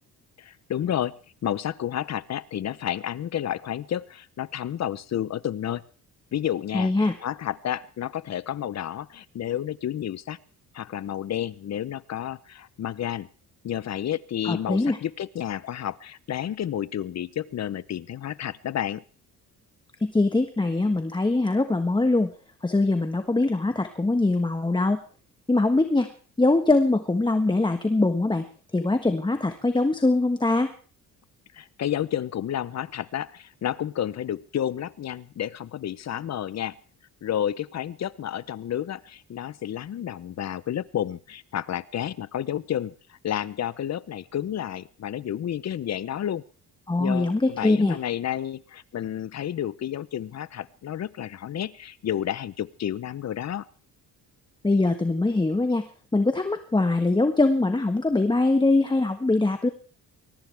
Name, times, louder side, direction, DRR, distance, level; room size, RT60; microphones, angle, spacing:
voice 1, 0.4-1.1 1.4-5.8 6.3-10.4 10.7-13.3 13.6-19.0 31.5-36.8 37.2-46.4 47.0-53.6, left 10 dB, 45° left, 18 dB, 0.8 m, -31 dB
voice 2, 6.7-7.1 14.4-15.0 20.0-22.3 22.6-25.0 25.5-26.1 26.4-28.4 28.7-30.7 46.9-48.0 54.6-55.9 56.1-59.7, left 2 dB, 15° left, 7 dB, 1.4 m, -22 dB
22.0 x 19.0 x 3.5 m, 0.40 s
cardioid pair, 105°, 36 cm